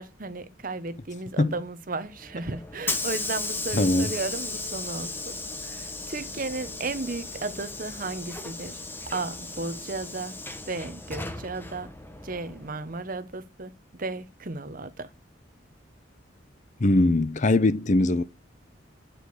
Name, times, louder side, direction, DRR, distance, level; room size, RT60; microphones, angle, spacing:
voice 1, 0.0-5.3 5.6-8.8 9.1-10.3 10.7-11.9 12.2-15.1, right 3 dB, 45° right, 1.0 m, -34 dB
Hiss / Sliding door, 2.2-13.0, left 3 dB, 10° left, 1.0 m, -36 dB
voice 2, 3.7-4.1 16.8-18.2, left 2 dB, 40° left, 0.6 m, -21 dB
8.9 x 5.2 x 7.8 m
head